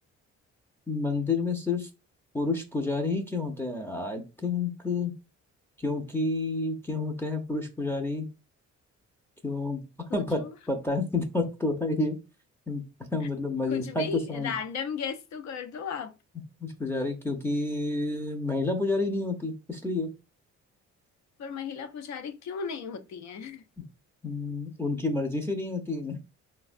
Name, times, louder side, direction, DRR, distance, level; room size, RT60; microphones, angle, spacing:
voice 1, 0.9-1.9 2.3-5.1 5.8-8.3 9.4-9.8 10.1-12.2 12.7-12.8 13.1-14.5 16.6-20.1 24.2-26.2, left 3 dB, 10° left, 0.5 m, -29 dB
voice 2, 10.1-10.6 13.7-16.1 21.4-23.6, left 6 dB, 65° left, 0.5 m, -36 dB
3.4 x 2.1 x 2.4 m
cardioid pair, 90°, 30 cm